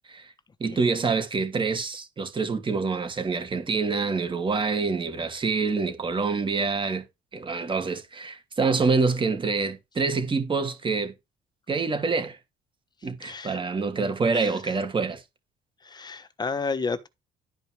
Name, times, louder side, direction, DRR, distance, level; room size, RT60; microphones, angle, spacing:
voice 1, 0.6-7.0 7.3-11.1 11.7-12.4 13.0-15.2, right 4 dB, 30° right, 2.8 m, -26 dB
voice 2, 13.2-13.6 14.3-14.5 15.8-17.1, left 4 dB, 25° left, 1.2 m, -31 dB
12.0 x 5.2 x 4.7 m
cardioid pair, 110°, 17 cm